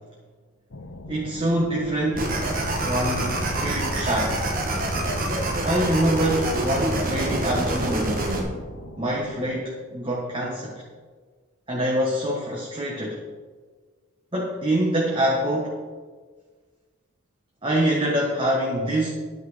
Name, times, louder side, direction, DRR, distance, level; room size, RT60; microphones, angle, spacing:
sound 1, 0.7-9.6, left 1 dB, 60° left, 1.0 m, -41 dB
voice 1, 1.1-2.3 2.7-4.4 5.6-8.2 9.0-10.8 11.7-13.2 14.3-15.8 17.6-19.1, right 1 dB, 25° right, -3 dB, 1.3 m, -25 dB
sound 2, 2.1-8.4, right 1 dB, 40° right, 1.6 m, -26 dB
11.0 x 9.2 x 5.0 m, 1.5 s
head